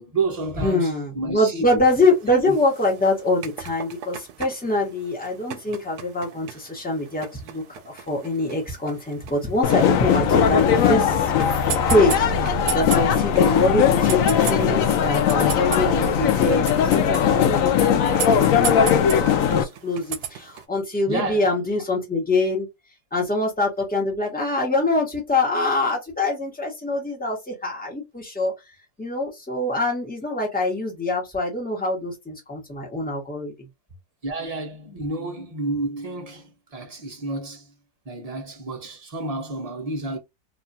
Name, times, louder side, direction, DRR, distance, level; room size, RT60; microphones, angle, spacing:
voice 1, 0.0-1.6 2.5-2.6 21.1-21.5 34.2-37.7 38.1-40.2, right 2 dB, 35° right, 0.6 m, -30 dB
voice 2, 0.6-11.6 11.9-18.9 19.2-22.7 23.1-28.5 29.0-33.7, left 2 dB, 5° left, 1.0 m, -24 dB
sound 1, 1.8-20.7, right 9 dB, 80° right, 1.1 m, -37 dB
sound 2, 9.6-19.6, left 8 dB, 70° left, 0.8 m, -19 dB
2.9 x 2.4 x 2.7 m
omnidirectional pair, 1.7 m